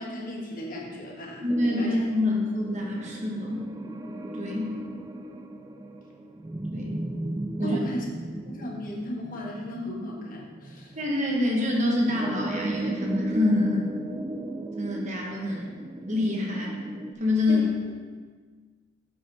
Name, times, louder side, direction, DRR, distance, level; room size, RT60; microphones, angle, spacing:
voice 1, 0.0-1.4 1.8-1.9 7.6-8.1 8.5-10.9 17.5-17.7, equal, 40° left, -3 dB, 1.6 m, -35 dB
voice 2, 1.4-3.7 4.3-4.8 6.7-7.0 7.6-7.8 10.9-13.9 14.8-15.8 16.1-16.8 17.2-17.7, left 2 dB, 35° right, -1 dB, 1.2 m, -26 dB
sound 1, 1.5-17.1, right 1 dB, 15° right, 0.4 m, -35 dB
7.9 x 7.6 x 3.5 m, 1.5 s
head